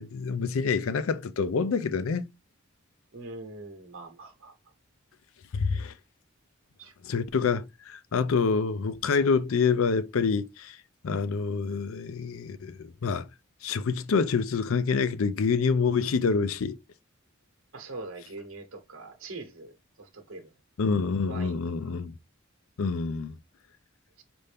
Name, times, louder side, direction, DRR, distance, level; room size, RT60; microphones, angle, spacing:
voice 1, 0.0-2.3 5.5-5.9 7.1-10.8 11.0-13.3 13.6-16.8 20.8-22.1 22.8-23.4, left 5 dB, 75° left, 0.4 m, -27 dB
voice 2, 3.1-4.5 6.8-6.9 17.7-20.5 21.3-21.9 24.2-24.3, right 3 dB, 70° right, 1.0 m, -43 dB
5.4 x 2.6 x 3.3 m
head